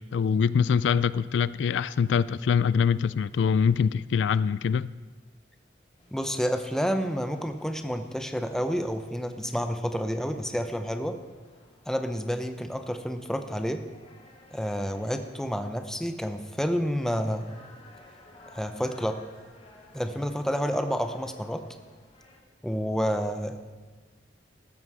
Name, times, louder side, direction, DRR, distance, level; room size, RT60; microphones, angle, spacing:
voice 1, 0.1-4.9, left 6 dB, 70° left, 0.3 m, -24 dB
sound 1, 6.0-22.4, left 1 dB, 35° left, 2.1 m, -56 dB
voice 2, 6.1-11.2 11.9-13.8 14.5-17.5 18.5-19.2 19.9-21.6 22.6-23.6, equal, 5° left, 0.7 m, -29 dB
13.5 x 13.0 x 4.9 m
head